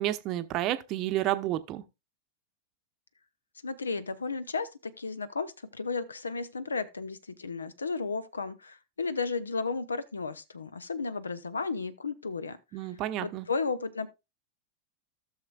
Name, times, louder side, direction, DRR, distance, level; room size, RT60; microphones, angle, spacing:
voice 1, 0.0-1.8 12.7-13.5, right 14 dB, 40° right, 0.8 m, -30 dB
voice 2, 3.6-12.6 13.2-14.1, left 4 dB, 75° left, 0.6 m, -34 dB
16.0 x 6.5 x 2.3 m
figure-of-eight pair, 90°, 0 cm